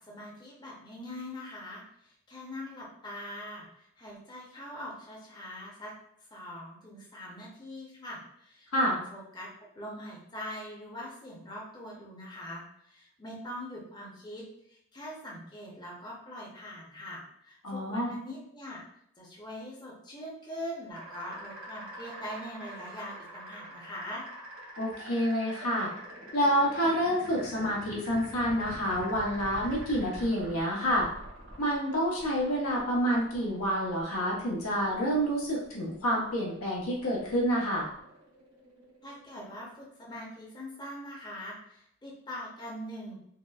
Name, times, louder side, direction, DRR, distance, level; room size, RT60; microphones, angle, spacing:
voice 1, 0.1-5.9 6.3-9.5 9.8-18.8 19.2-24.3 39.0-43.2, left 1 dB, 20° left, -4 dB, 0.7 m, -42 dB
voice 2, 17.6-18.1 24.8-25.9 26.3-31.1 31.6-37.9, equal, 85° left, -3 dB, 1.0 m, -28 dB
sound 1, 20.9-39.7, right 1 dB, 75° right, 0.8 m, -46 dB
4.0 x 2.0 x 2.3 m, 0.72 s
head